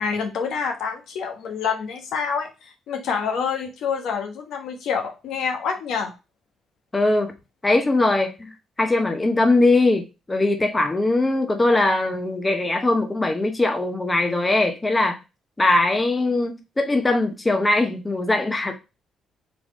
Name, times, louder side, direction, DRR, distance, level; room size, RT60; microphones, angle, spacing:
voice 1, 0.0-6.1, left 6 dB, 80° left, 1.1 m, -27 dB
voice 2, 6.9-7.3 7.6-8.5 8.8-15.2 15.6-18.7, left 2 dB, 20° left, 0.9 m, -21 dB
4.0 x 3.4 x 3.6 m
cardioid pair, 90°, 0 cm